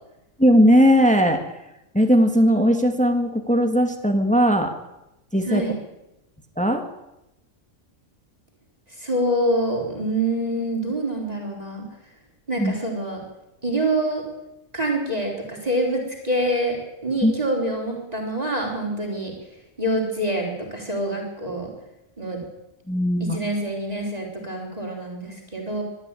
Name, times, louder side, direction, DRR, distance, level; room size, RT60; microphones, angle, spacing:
voice 1, 0.4-1.4 1.9-4.7 5.3-5.6 6.6-6.8 12.6-12.7 17.2-17.3 22.9-23.4, equal, 5° left, 5 dB, 1.9 m, -18 dB
voice 2, 8.9-11.8 12.5-13.2 13.6-14.2 14.7-16.8 17.0-19.3 19.8-21.7 22.2-22.4 23.2-25.8, right 1 dB, 25° right, 0 dB, 4.4 m, -26 dB
23.5 x 12.5 x 9.1 m, 0.91 s
omnidirectional pair, 1.5 m